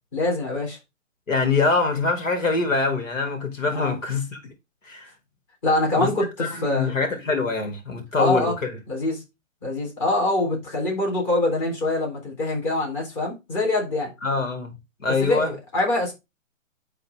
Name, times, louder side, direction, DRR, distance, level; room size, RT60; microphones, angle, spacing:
voice 1, 0.1-0.8 3.7-4.0 5.6-6.9 8.1-8.6 8.9-9.2 9.6-14.1 15.1-16.1, left 2 dB, 25° left, 4.0 m, -24 dB
voice 2, 1.3-4.4 4.8-5.1 6.0-6.1 6.4-8.7 14.2-14.7 15.0-15.5, left 4 dB, 75° left, 3.0 m, -24 dB
12.0 x 4.0 x 3.7 m
hypercardioid pair, 165°, 39 cm